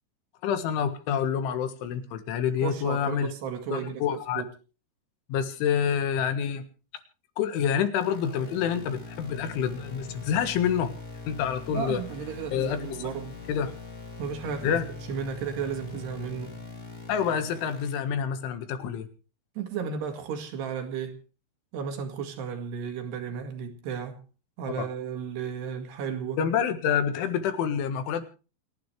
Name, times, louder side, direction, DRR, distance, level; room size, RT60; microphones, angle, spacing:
voice 1, 0.4-3.3 3.7-4.4 5.3-6.7 7.4-10.9 11.3-12.0 12.5-13.1 13.5-13.7 14.6-14.8 17.1-19.1 24.8-24.9 26.4-28.2, left 8 dB, 75° left, 4.0 m, -27 dB
voice 2, 2.6-4.5 11.7-13.4 14.2-14.8 15.1-16.6 19.6-21.2 21.7-24.2 24.6-26.4, right 7 dB, 60° right, 3.9 m, -34 dB
sound 1, 8.0-18.0, left 3 dB, 20° left, 3.6 m, -42 dB
29.0 x 11.5 x 3.3 m
omnidirectional pair, 5.6 m